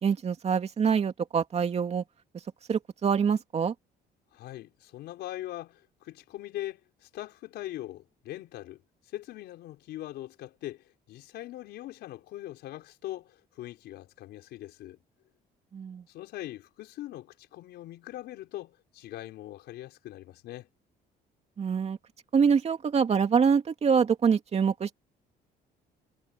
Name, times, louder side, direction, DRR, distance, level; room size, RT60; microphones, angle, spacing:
voice 1, 0.0-2.0 2.7-3.7 15.7-16.0 21.6-22.0 22.3-24.9, right 6 dB, 40° right, 2.5 m, -25 dB
voice 2, 4.3-8.8 9.1-15.0 16.1-20.7, left 14 dB, 75° left, 5.0 m, -41 dB
cardioid pair, 110°, 17 cm